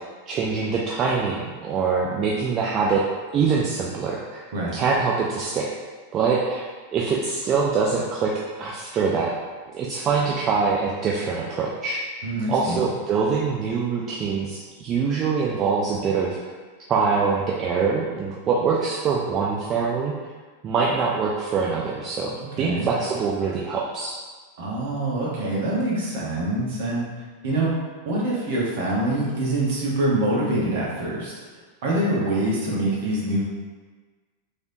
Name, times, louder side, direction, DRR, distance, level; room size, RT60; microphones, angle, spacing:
voice 1, 0.3-3.0 3.3-4.4 4.7-5.7 6.1-8.3 8.6-9.3 9.7-12.0 12.5-16.4 16.9-20.1 20.6-24.2, right 5 dB, 30° right, -4 dB, 0.3 m, -24 dB
voice 2, 12.2-12.8 22.4-22.8 24.6-27.0 27.4-27.7 28.0-31.3 31.8-33.4, right 1 dB, 55° right, -5 dB, 0.9 m, -25 dB
3.3 x 2.6 x 2.6 m, 1.4 s
figure-of-eight pair, 90°, 0 cm